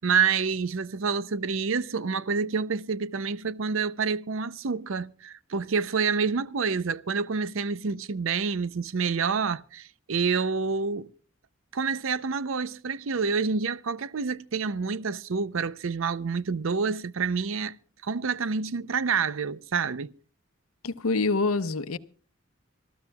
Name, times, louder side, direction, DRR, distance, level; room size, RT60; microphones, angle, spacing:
voice 1, 0.0-11.1 11.7-17.8 18.0-20.1, right 5 dB, 70° right, 0.6 m, -28 dB
voice 2, 20.8-22.0, left 3 dB, 90° left, 0.8 m, -26 dB
26.0 x 14.0 x 2.3 m
head